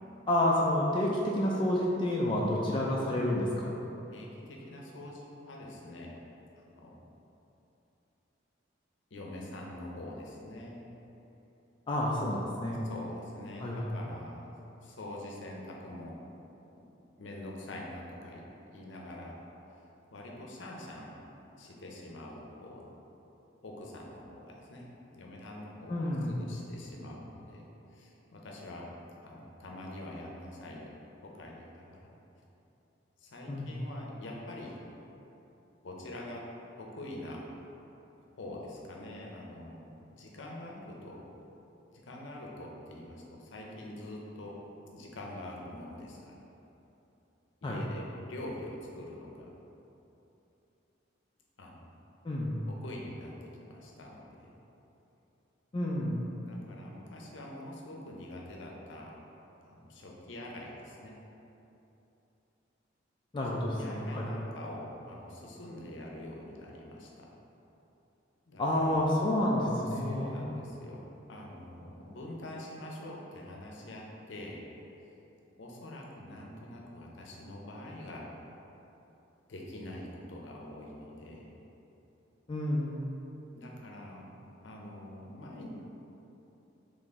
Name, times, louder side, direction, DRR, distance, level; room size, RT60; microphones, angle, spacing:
voice 1, 0.3-3.7 11.9-12.8 13.6-14.0 25.9-26.4 33.5-33.8 47.6-47.8 52.2-52.6 55.7-56.2 63.3-64.3 68.6-70.4 82.5-83.0, left 1 dB, 25° left, -4 dB, 0.3 m, -29 dB
voice 2, 4.1-6.1 6.7-6.9 9.1-10.9 12.7-14.5 14.8-16.1 16.8-16.9 17.2-19.4 20.1-21.2 21.6-22.9 23.6-27.6 27.9-28.9 29.2-30.9 31.2-32.1 33.2-34.8 35.8-36.4 36.8-37.4 38.4-41.2 42.0-44.6 44.9-46.4 47.6-49.5 51.6-51.8 52.7-54.5 56.4-59.1 59.6-61.2 63.8-67.3 68.5-69.1 69.9-71.0 71.3-74.6 75.6-78.3 79.5-81.5 83.5-85.7, left 1 dB, 70° left, -2 dB, 0.6 m, -45 dB
4.2 x 3.0 x 3.6 m, 3.0 s
head